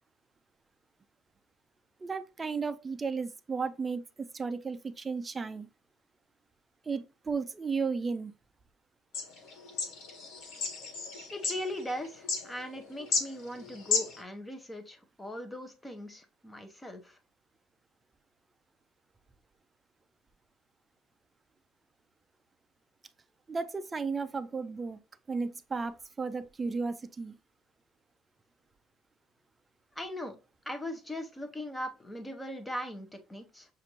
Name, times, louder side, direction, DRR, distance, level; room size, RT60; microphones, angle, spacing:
voice 1, 2.0-4.0 4.3-5.7 6.9-8.3 23.5-25.0 25.3-27.3, right 4 dB, 20° right, 0.4 m, -34 dB
sound 1, 9.1-14.2, left 5 dB, 65° left, 1.5 m, -33 dB
voice 2, 11.3-17.2 30.0-30.4 30.7-33.7, left 1 dB, 10° left, 0.8 m, -39 dB
6.5 x 2.5 x 2.9 m
cardioid pair, 155°, 0 cm